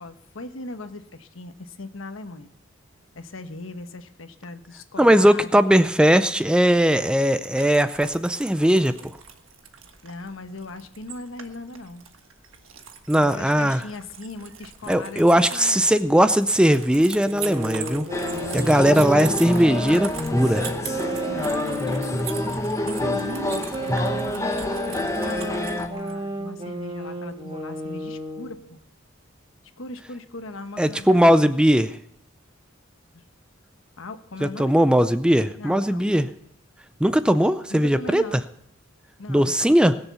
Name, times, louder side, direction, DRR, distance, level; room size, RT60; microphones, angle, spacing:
voice 1, 0.0-2.5 3.1-5.6 10.0-12.1 13.2-15.2 15.5-15.9 21.3-22.4 22.8-28.8 29.8-31.3 33.1-33.2 34.0-34.8 35.6-36.1 37.7-38.4 39.2-39.5, left 2 dB, 80° left, 9 dB, 1.1 m, -38 dB
voice 2, 5.0-9.1 13.1-13.8 14.9-18.1 18.5-20.7 30.8-32.0 34.4-36.3 37.0-38.4 39.3-40.0, equal, 5° right, 12 dB, 0.4 m, -19 dB
sound 1, 7.4-26.1, right 8 dB, 80° right, 1.4 m, -41 dB
sound 2, 17.3-22.5 23.0-28.6, right 1 dB, 30° right, 2.0 m, -33 dB
sound 3, 18.1-25.9, left 1 dB, 15° left, 1.1 m, -27 dB
20.5 x 7.0 x 7.0 m, 0.72 s
head